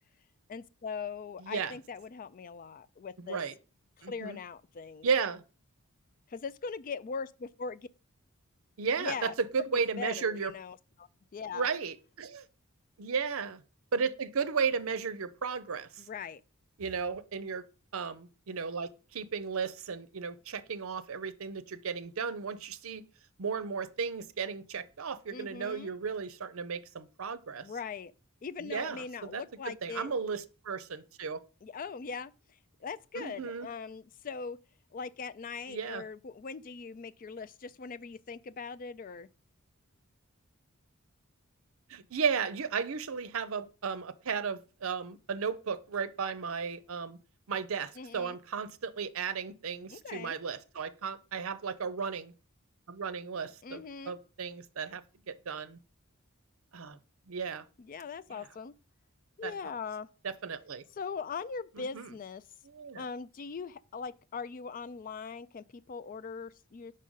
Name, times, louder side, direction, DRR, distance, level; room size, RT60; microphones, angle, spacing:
voice 1, 0.5-3.4 4.0-5.1 6.3-7.9 9.0-9.3 9.7-11.7 16.0-16.4 25.3-26.0 27.6-28.1 28.4-30.1 31.6-32.3 32.8-34.6 34.9-39.3 48.0-48.4 49.9-50.4 53.6-54.2 57.8-58.7 59.4-60.1 60.9-62.4 63.0-66.9, left 5 dB, 40° left, 0.3 m, -41 dB
voice 2, 1.4-1.7 3.2-3.5 4.0-4.4 5.0-5.4 8.8-10.5 11.5-12.4 13.0-13.6 13.9-16.0 16.8-17.6 17.9-23.0 23.4-27.7 28.6-31.4 33.2-33.7 35.7-36.0 41.9-47.2 47.5-52.3 52.9-55.8 56.7-57.0 57.3-57.6 58.3-58.4 59.4-59.5 60.4-60.8 61.8-62.1 62.7-63.0, right 5 dB, 70° right, 0.6 m, -34 dB
5.5 x 5.0 x 5.4 m
head